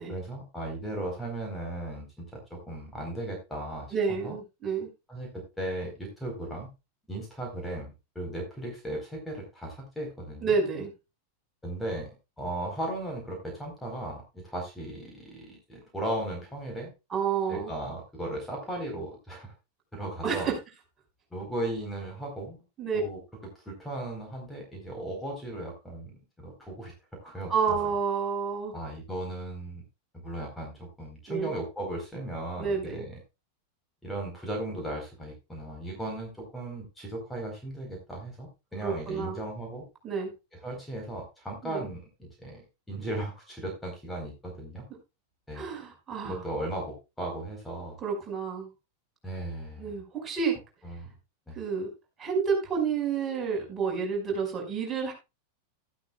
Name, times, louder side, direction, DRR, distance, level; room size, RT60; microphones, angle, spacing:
voice 1, 0.0-4.4 5.1-6.7 7.1-10.5 11.6-12.1 12.4-16.9 17.5-19.5 19.9-20.5 21.3-22.6 22.9-23.2 23.5-26.9 27.2-27.5 28.7-29.8 30.2-33.2 34.0-39.8 40.6-42.6 42.9-44.9 45.5-45.6 46.2-48.0 49.2-50.0 50.8-51.1 51.5-51.6, right 1 dB, 5° left, 1 dB, 4.3 m, -36 dB
voice 2, 3.9-4.9 10.4-10.9 17.1-17.7 20.2-20.5 22.8-23.0 27.5-28.7 31.3-31.5 32.6-33.1 38.8-39.4 40.0-40.3 41.6-41.8 45.5-46.5 48.0-48.7 49.8-50.6 51.6-51.9 52.2-55.1, right 5 dB, 20° right, 0 dB, 5.5 m, -29 dB
13.0 x 12.0 x 2.4 m, 0.26 s
figure-of-eight pair, 90°, 0 cm